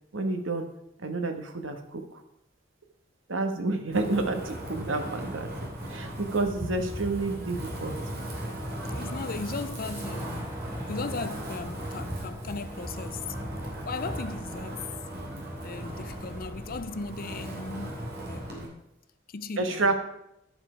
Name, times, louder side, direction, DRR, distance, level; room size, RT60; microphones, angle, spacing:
voice 1, 0.1-0.7 1.0-2.2 3.3-8.0 19.6-20.0, right 2 dB, 85° right, 1.4 m, -29 dB
Wind, 3.9-18.7, right 1 dB, 55° right, 2.9 m, -38 dB
sound 1, 6.4-14.5, equal, 20° left, 2.5 m, -41 dB
voice 2, 8.8-10.6 10.9-13.6 13.9-14.9 15.6-17.9 18.2-18.8 19.3-20.0, left 4 dB, 50° left, 0.5 m, -37 dB
sound 2, 10.0-17.9, right 1 dB, 20° right, 1.1 m, -50 dB
10.5 x 7.3 x 5.1 m
head